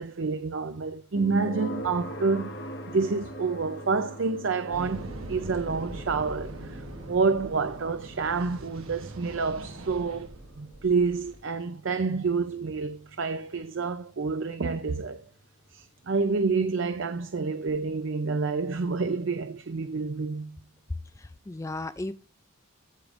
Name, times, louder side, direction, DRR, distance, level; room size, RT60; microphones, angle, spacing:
voice 1, 0.0-2.6 2.9-10.3 10.6-15.2 15.7-20.6, right 4 dB, 60° right, 0.5 m, -28 dB
sound 1, 1.2-16.1, equal, 55° left, 1.3 m, -43 dB
sound 2, 4.7-11.4, right 2 dB, 75° right, 1.1 m, -42 dB
voice 2, 21.2-22.1, left 2 dB, 15° left, 0.3 m, -35 dB
15.0 x 5.1 x 2.5 m
head